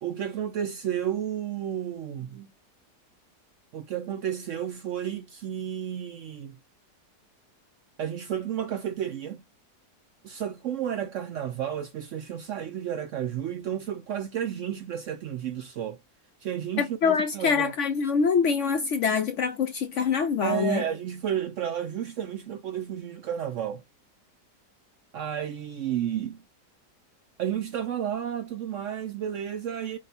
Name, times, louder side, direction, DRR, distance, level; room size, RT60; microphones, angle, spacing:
voice 1, 0.0-2.5 3.7-6.6 8.0-9.4 10.2-16.0 16.4-17.7 20.4-23.8 25.1-26.4 27.4-30.0, right 9 dB, 70° right, 0.7 m, -32 dB
voice 2, 16.8-20.8, left 6 dB, 65° left, 0.7 m, -25 dB
5.2 x 2.2 x 4.0 m
omnidirectional pair, 1.7 m